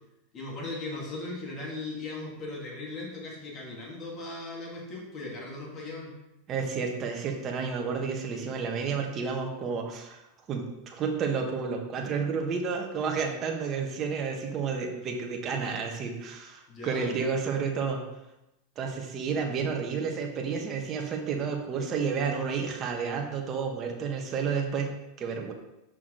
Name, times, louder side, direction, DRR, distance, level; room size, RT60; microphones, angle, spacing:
voice 1, 0.3-6.1 16.7-17.1, left 2 dB, 30° left, -2 dB, 2.1 m, -38 dB
voice 2, 6.5-10.2 10.5-18.0 18.8-24.9 25.2-25.5, right 5 dB, 30° right, 2 dB, 1.2 m, -31 dB
6.3 x 6.0 x 3.8 m, 0.90 s
supercardioid pair, 140°, 0 cm